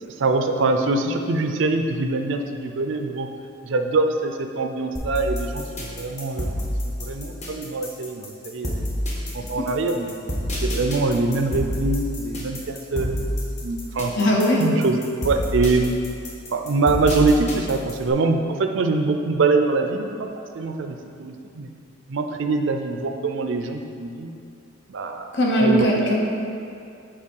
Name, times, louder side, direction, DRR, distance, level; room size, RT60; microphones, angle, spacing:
voice 1, 0.0-3.3 3.6-6.5 6.8-8.9 9.3-10.2 10.6-13.3 13.6-14.1 14.6-15.0 15.2-16.0 16.5-20.3 20.5-21.7 22.1-24.3 24.9-25.3 25.6-26.1, right 3 dB, 60° right, 5 dB, 0.5 m, -24 dB
sound 1, 4.9-18.1, equal, 35° left, 1.1 m, -28 dB
voice 2, 14.1-14.6 25.3-26.2, equal, 55° left, -1 dB, 0.9 m, -19 dB
5.4 x 4.3 x 5.3 m, 2.5 s
head